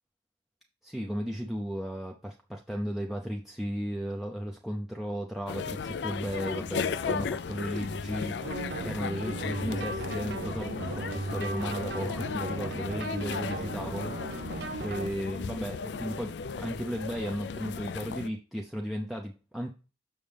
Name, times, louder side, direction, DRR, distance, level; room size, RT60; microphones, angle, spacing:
voice 1, 0.8-14.5 14.8-19.7, equal, ahead, -1 dB, 0.6 m, -35 dB
sound 1, 5.5-18.3, left 5 dB, 75° left, 0.4 m, -36 dB
sound 2, 8.4-15.1, right 2 dB, 65° right, 0.7 m, -37 dB
7.1 x 6.4 x 3.4 m, 0.34 s
head